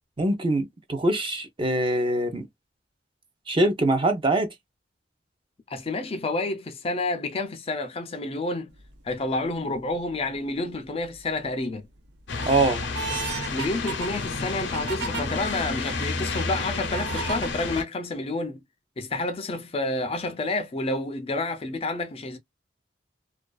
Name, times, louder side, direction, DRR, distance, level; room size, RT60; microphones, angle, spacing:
voice 1, 0.2-2.4 3.5-4.5 12.5-12.8, right 2 dB, 30° right, 0.6 m, -23 dB
voice 2, 5.7-8.7 9.0-11.9 13.5-18.6 19.0-22.4, left 2 dB, 30° left, 0.4 m, -29 dB
sound 1, 8.8-9.1 9.7-10.4 10.9-11.5 12.0-15.2 15.9-16.0 16.9-17.5, right 5 dB, 70° right, 0.5 m, -35 dB
sound 2, 12.3-17.8, left 3 dB, 85° left, 0.6 m, -30 dB
2.4 x 2.3 x 2.2 m
head